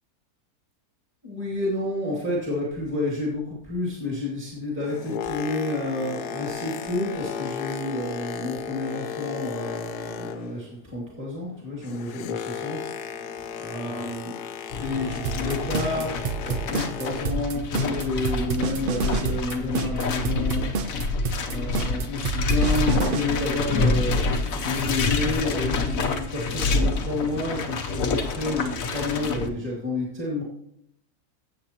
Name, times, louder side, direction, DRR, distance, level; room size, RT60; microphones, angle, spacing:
voice 1, 1.2-12.8 13.6-14.4 14.7-20.7 21.5-24.3 24.6-30.4, left 2 dB, 5° right, -5 dB, 2.2 m, -30 dB
Boat Water vehicle, 4.6-10.8 11.0-17.5 18.1-18.3, left 8 dB, 85° left, 1.2 m, -35 dB
sound 1, 14.7-29.5, left 3 dB, 65° left, 1.3 m, -27 dB
sound 2, 15.2-23.2, right 5 dB, 65° right, 0.5 m, -28 dB
16.0 x 7.5 x 2.9 m, 0.72 s
omnidirectional pair, 1.6 m